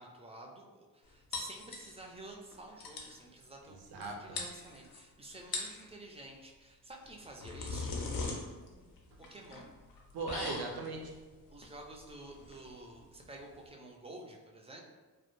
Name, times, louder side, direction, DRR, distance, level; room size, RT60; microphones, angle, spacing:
voice 1, 0.0-8.0 9.3-9.7 11.5-14.8, right 2 dB, 15° right, 0 dB, 0.4 m, -50 dB
sound 1, 1.3-2.2 2.5-2.6 2.8-3.2 4.0-4.1 4.4-5.0 5.4-5.9 7.0-13.7, left 3 dB, 75° left, 0.6 m, -41 dB
voice 2, 3.7-4.4 10.1-11.1, right 3 dB, 75° right, 2 dB, 0.5 m, -39 dB
2.1 x 2.1 x 3.0 m, 1.3 s
cardioid pair, 65°, 36 cm